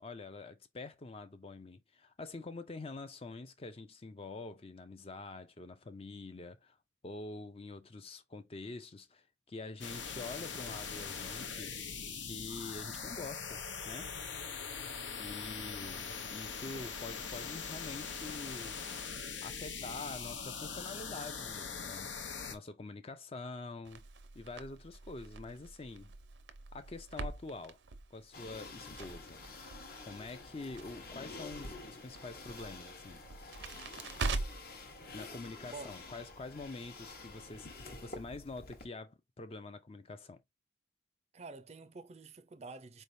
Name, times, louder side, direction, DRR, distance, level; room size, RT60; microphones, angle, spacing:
voice 1, 0.0-6.8 7.0-11.7 12.2-14.2 15.2-19.1 19.4-22.1 22.5-24.0 24.3-26.1 26.7-27.8 28.1-29.4 30.0-33.2 35.1-40.4, left 3 dB, 30° left, 0.5 m, -46 dB
sound 1, 9.8-22.5, left 5 dB, 85° left, 0.9 m, -42 dB
Crackle, 23.8-34.8, right 3 dB, 80° right, 0.6 m, -43 dB
sound 2, 28.3-38.9, left 3 dB, 55° left, 1.0 m, -49 dB
voice 2, 41.3-43.0, right 3 dB, 35° right, 0.5 m, -48 dB
4.2 x 3.3 x 2.6 m
head